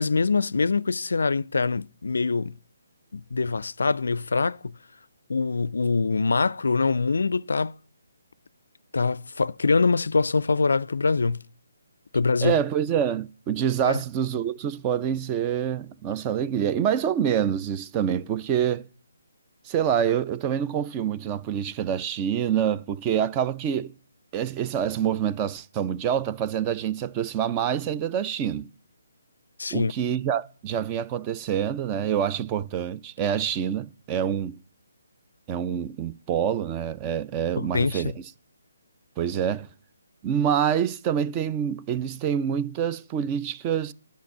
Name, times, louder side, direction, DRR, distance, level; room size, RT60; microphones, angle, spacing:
voice 1, 0.0-2.5 3.1-4.7 5.3-7.8 8.9-11.4 12.1-12.6 13.8-14.0 29.6-29.9 37.6-38.1, left 4 dB, 75° left, 0.4 m, -24 dB
voice 2, 12.4-18.9 19.7-23.9 24.3-28.7 29.7-34.6 35.5-38.1 39.2-39.7 40.2-43.9, right 9 dB, 20° right, 0.4 m, -26 dB
10.5 x 5.6 x 7.2 m
figure-of-eight pair, 150°, 0 cm